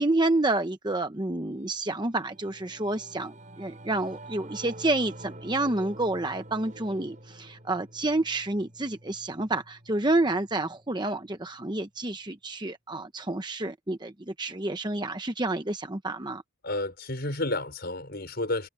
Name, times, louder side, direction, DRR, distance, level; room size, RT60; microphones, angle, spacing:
voice 1, 0.0-16.4, right 2 dB, 20° right, 0.9 m, -29 dB
Singing / Musical instrument, 1.7-11.4, right 1 dB, 35° right, 5.4 m, -48 dB
voice 2, 16.6-18.7, left 2 dB, 45° left, 5.8 m, -31 dB
head